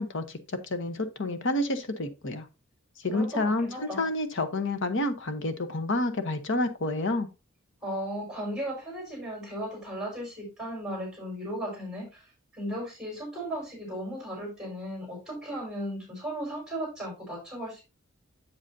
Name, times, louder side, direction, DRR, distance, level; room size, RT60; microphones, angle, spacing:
voice 1, 0.0-2.5 3.0-7.3, left 2 dB, 65° left, 1.1 m, -29 dB
voice 2, 3.1-4.1 7.8-17.8, equal, 5° right, 4.9 m, -36 dB
8.0 x 7.7 x 2.7 m
head